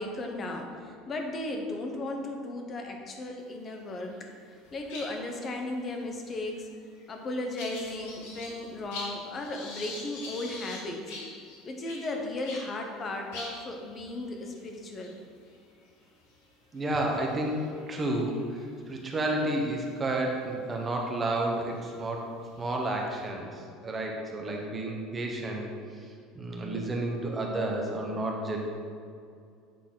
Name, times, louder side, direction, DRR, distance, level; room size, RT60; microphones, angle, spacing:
voice 1, 0.0-4.3 4.7-6.7 7.1-11.0 11.6-15.1 16.9-17.0, left 2 dB, 30° left, 2 dB, 0.9 m, -35 dB
sound 1, 3.8-4.3 4.5-12.7 13.0-13.1 13.3-19.1 19.7-20.0 20.8-20.9 21.5-23.3, left 2 dB, 85° left, 1.6 m, -45 dB
voice 2, 16.7-18.4 18.9-22.3 22.6-23.5 23.8-25.6 26.3-28.7, right 1 dB, 20° right, 0 dB, 1.0 m, -31 dB
8.3 x 4.1 x 3.9 m, 2.3 s
cardioid pair, 135°, 0 cm